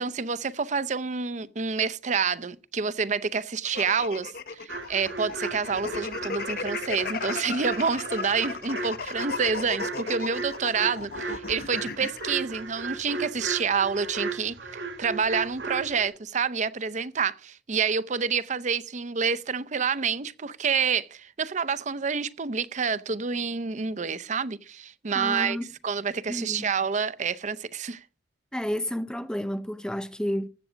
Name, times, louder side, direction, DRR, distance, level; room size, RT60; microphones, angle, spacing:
voice 1, 0.0-4.3 4.6-14.5 15.0-25.6 25.8-28.0, right 5 dB, 45° right, 0.6 m, -28 dB
sound 1, 3.6-12.3, left 5 dB, 55° left, 0.7 m, -35 dB
sound 2, 4.7-16.1, right 4 dB, 85° right, 3.1 m, -36 dB
voice 2, 25.1-25.7 26.3-26.7 28.5-30.5, equal, 5° left, 0.5 m, -30 dB
14.5 x 8.1 x 5.1 m
head